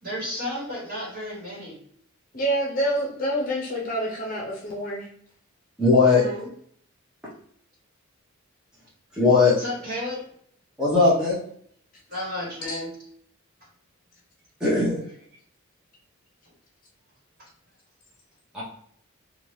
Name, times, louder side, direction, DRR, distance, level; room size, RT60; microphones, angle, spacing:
voice 1, 0.0-1.8 6.1-6.5 9.6-10.3 12.1-12.9, left 1 dB, 45° right, -6 dB, 1.4 m, -32 dB
voice 2, 2.3-5.1 9.8-9.9 12.7-12.8, right 1 dB, 40° left, -2 dB, 0.7 m, -27 dB
voice 3, 5.8-6.2 9.1-9.5 10.8-11.4 14.6-15.0 18.5-18.6, left 3 dB, 5° right, -9 dB, 0.8 m, -18 dB
2.8 x 2.3 x 3.1 m, 0.64 s
head